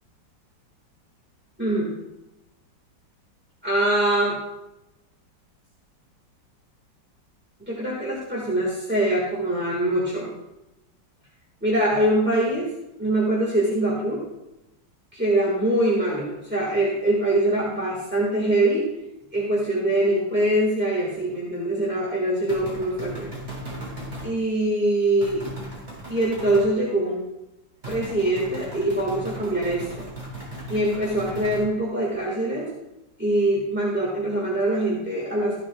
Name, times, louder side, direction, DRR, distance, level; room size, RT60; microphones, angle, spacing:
voice 1, 1.6-1.9 3.6-4.4 7.7-10.3 11.6-12.7 13.0-14.2 15.1-18.8 19.3-23.3 24.2-25.4 26.1-27.2 27.8-30.1 30.7-32.7 33.2-35.6, right 1 dB, 5° right, -5 dB, 1.5 m, -23 dB
sound 1, 22.5-24.3 25.2-26.7 27.8-31.7, right 1 dB, 35° right, 4.3 m, -37 dB
14.5 x 11.0 x 2.3 m, 0.96 s
omnidirectional pair, 2.0 m